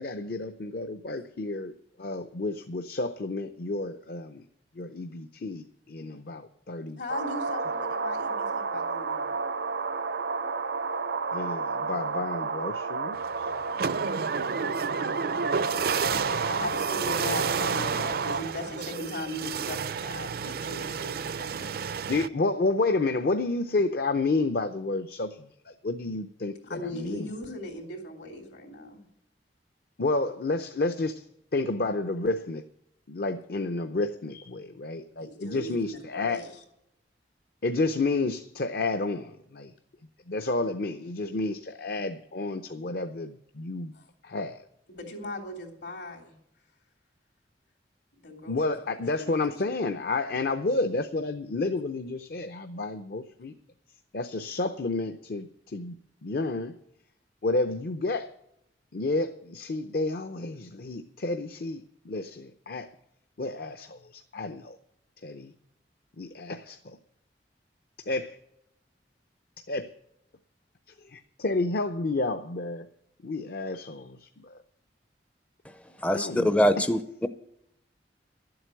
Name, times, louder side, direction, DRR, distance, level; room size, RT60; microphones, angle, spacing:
voice 1, 0.0-1.7 2.0-4.4 4.8-7.0 11.3-13.5 22.1-27.3 30.0-31.2 31.5-32.6 33.1-36.4 37.6-39.7 40.3-43.9 44.2-44.6 48.5-53.5 54.1-56.0 56.2-56.7 57.4-58.3 58.9-62.9 63.4-64.8 65.2-65.5 66.2-67.0 68.1-68.4 69.7-69.9 71.0-72.9 73.2-74.6 76.1-76.5 76.8-76.9, left 3 dB, 60° left, 8 dB, 0.7 m, -30 dB
voice 2, 7.0-9.3 13.7-14.0 16.4-21.7 26.6-29.1 35.2-36.6 43.9-44.1 44.9-46.3 48.2-48.8 49.1-49.3, left 2 dB, 80° left, 1 dB, 3.2 m, -38 dB
sound 1, 7.1-18.4, right 4 dB, 80° right, 0.7 m, -31 dB
sound 2, 13.1-22.3, right 6 dB, 60° right, 0.5 m, -31 dB
voice 3, 76.0-77.3, equal, 5° left, 10 dB, 0.4 m, -23 dB
12.0 x 7.9 x 9.2 m, 0.80 s
head